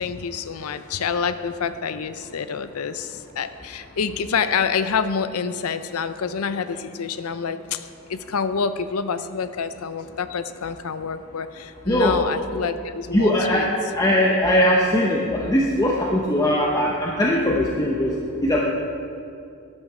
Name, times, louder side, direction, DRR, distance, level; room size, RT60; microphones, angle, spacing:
voice 1, 0.0-13.7, left 6 dB, 90° left, 12 dB, 0.6 m, -27 dB
voice 2, 11.8-12.3 13.1-18.6, left 1 dB, 15° left, -3 dB, 0.7 m, -20 dB
12.0 x 9.7 x 4.9 m, 2.6 s
head